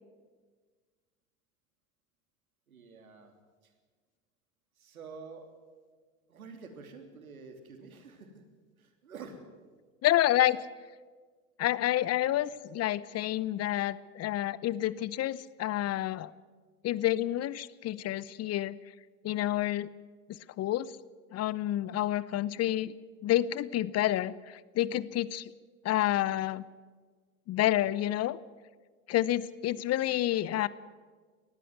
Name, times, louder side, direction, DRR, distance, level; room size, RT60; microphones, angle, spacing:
voice 1, 2.7-3.3 3.6-3.7 4.8-5.6 6.3-8.4 8.8-9.4 12.2-12.5, right 4 dB, 85° right, 6 dB, 3.1 m, -48 dB
voice 2, 10.0-10.7 11.6-16.3 16.8-18.7 19.2-19.9 20.6-21.0 21.3-22.9 23.2-25.4 25.8-26.6 27.5-28.4 29.1-30.7, left 14 dB, 35° left, 19 dB, 0.8 m, -29 dB
19.5 x 14.5 x 9.5 m, 1.5 s
hypercardioid pair, 80°, 41 cm